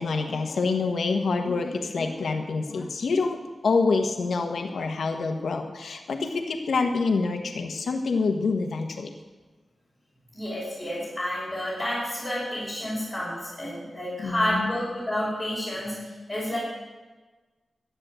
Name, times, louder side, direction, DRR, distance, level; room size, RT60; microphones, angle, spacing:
voice 1, 0.0-3.4 3.6-9.1 14.2-14.7, left 4 dB, 90° left, 4 dB, 1.4 m, -26 dB
voice 2, 10.3-15.9 16.3-16.6, left 1 dB, 5° left, -9 dB, 5.6 m, -30 dB
12.5 x 9.7 x 7.8 m, 1.3 s
wide cardioid pair, 170°, 0 cm